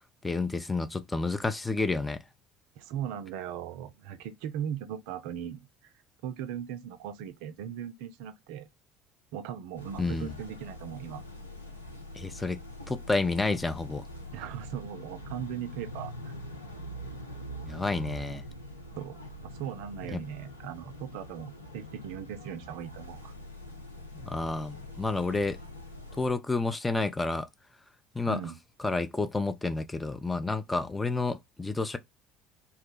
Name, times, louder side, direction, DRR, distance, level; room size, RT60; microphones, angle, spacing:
voice 1, 0.2-2.2 10.0-10.3 12.2-12.6 12.9-14.0 17.6-18.4 20.1-20.2 24.1-25.6 26.2-27.5 28.1-28.4 28.8-32.0, left 3 dB, 15° left, 0.5 m, -30 dB
voice 2, 2.8-5.9 6.2-8.7 9.3-11.2 14.3-16.3 19.0-23.3 28.3-28.5, right 9 dB, 60° right, 0.4 m, -38 dB
sound 1, 9.8-26.3, equal, 90° left, 0.6 m, -44 dB
2.8 x 2.1 x 3.8 m
figure-of-eight pair, 60°, 0 cm